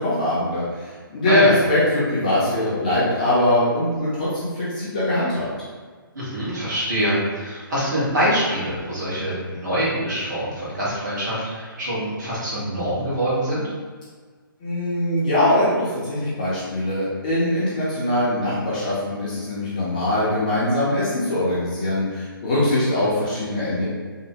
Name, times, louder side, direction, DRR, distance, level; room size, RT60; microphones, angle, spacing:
voice 1, 0.0-5.5 14.6-23.9, left 1 dB, 20° left, -9 dB, 0.5 m, -22 dB
voice 2, 6.1-13.7, right 1 dB, 50° right, -9 dB, 1.4 m, -24 dB
3.0 x 2.0 x 2.7 m, 1.5 s
hypercardioid pair, 170°, 12 cm